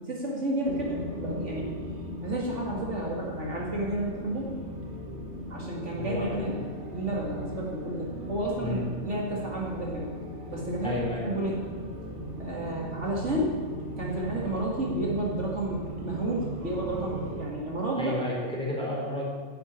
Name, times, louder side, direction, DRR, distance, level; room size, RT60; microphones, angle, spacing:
voice 1, 0.1-1.8 2.2-4.5 5.5-6.6 6.9-10.1 10.5-11.6 12.4-13.6 14.0-18.1, right 1 dB, 65° right, -3 dB, 2.5 m, -31 dB
sound 1, 0.7-17.5, equal, 45° right, 1.7 m, -38 dB
voice 2, 6.0-6.4 8.6-8.8 10.8-11.4 18.0-19.3, left 1 dB, 5° left, -5 dB, 3.9 m, -32 dB
11.0 x 7.8 x 8.9 m, 1.5 s
omnidirectional pair, 1.3 m